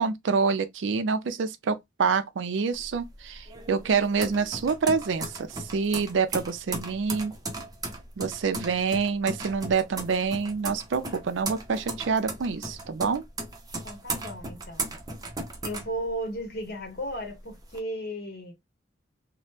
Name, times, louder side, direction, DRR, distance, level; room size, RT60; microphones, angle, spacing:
voice 1, 0.0-7.3 8.2-13.2, right 5 dB, 75° right, 0.4 m, -27 dB
sound 1, 2.7-16.6 17.0-17.8, right 2 dB, 20° right, 0.6 m, -36 dB
voice 2, 13.8-15.0 15.6-18.5, equal, 55° left, 1.1 m, -35 dB
3.0 x 2.1 x 3.1 m
head